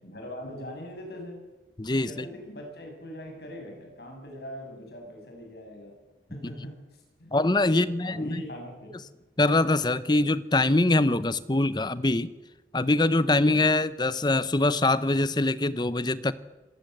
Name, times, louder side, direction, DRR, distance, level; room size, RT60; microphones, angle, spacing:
voice 1, 0.0-1.4 1.9-5.9 6.3-6.7 7.2-9.0, equal, 60° left, 3 dB, 7.2 m, -42 dB
voice 2, 1.8-2.2 7.3-8.4 9.4-12.3 12.7-16.3, left 2 dB, 25° left, 16 dB, 0.8 m, -23 dB
26.5 x 18.5 x 8.0 m, 1.1 s
head